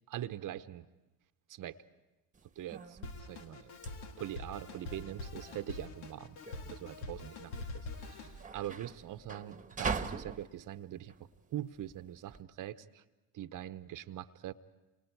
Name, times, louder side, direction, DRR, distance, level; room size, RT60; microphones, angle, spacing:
voice 1, 0.1-0.9 1.5-1.8 2.6-3.0 3.3-3.7 4.2-6.4 6.6-11.1 11.5-13.0 13.3-14.5, right 12 dB, 50° right, 11 dB, 1.0 m, -43 dB
sound 1, 2.3-12.4, right 5 dB, 20° right, 1.3 m, -43 dB
Drum kit, 3.0-8.4, left 3 dB, 80° left, 2.0 m, -45 dB
29.0 x 27.0 x 4.8 m, 1.1 s
supercardioid pair, 85°, 42 cm